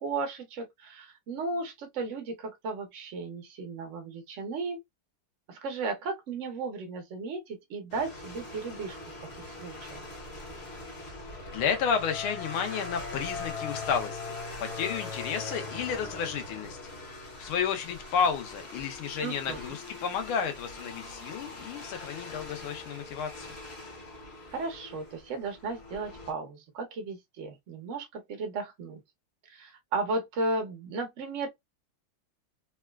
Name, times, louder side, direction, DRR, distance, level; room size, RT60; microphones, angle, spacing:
voice 1, 0.0-4.8 5.5-10.0 19.2-19.7 24.5-29.0 29.5-31.5, right 3 dB, 75° right, 0.6 m, -35 dB
sound 1, 7.9-26.3, left 3 dB, 45° left, 0.9 m, -41 dB
voice 2, 11.5-14.2 14.6-16.8 17.4-23.5, left 7 dB, 80° left, 1.6 m, -31 dB
4.0 x 2.3 x 2.2 m
omnidirectional pair, 2.3 m